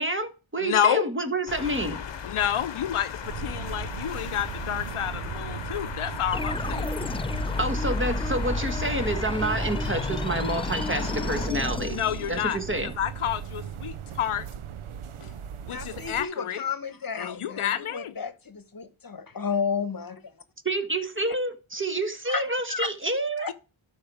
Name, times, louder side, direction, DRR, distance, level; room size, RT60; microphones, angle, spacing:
voice 1, 0.0-2.0 7.6-12.0 12.3-12.9 20.6-23.5, right 1 dB, 25° right, 1.5 m, -28 dB
voice 2, 0.6-1.1 2.2-6.9 11.8-14.5 15.2-15.3 15.6-16.6 17.2-18.1, left 10 dB, 90° left, 0.7 m, -29 dB
sound 1, 1.5-11.5, left 7 dB, 60° left, 0.9 m, -37 dB
sound 2, 3.2-16.2, right 8 dB, 80° right, 0.7 m, -37 dB
sound 3, 6.3-12.8, left 3 dB, 10° left, 0.4 m, -31 dB
voice 3, 15.7-20.2 22.3-22.9 23.4-23.5, left 6 dB, 45° left, 1.1 m, -32 dB
12.0 x 4.8 x 4.8 m
cardioid pair, 45°, 49 cm